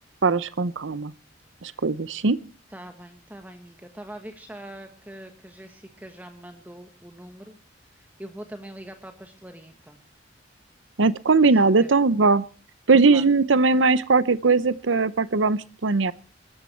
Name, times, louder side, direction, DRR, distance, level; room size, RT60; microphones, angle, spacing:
voice 1, 0.2-1.1 1.6-2.4 11.0-12.4 12.9-16.1, right 4 dB, 85° right, 16 dB, 0.8 m, -20 dB
voice 2, 2.7-7.6 7.9-10.0 11.4-11.9 12.9-13.3, right 1 dB, 10° right, 6 dB, 1.6 m, -43 dB
22.5 x 13.5 x 4.5 m, 0.37 s
head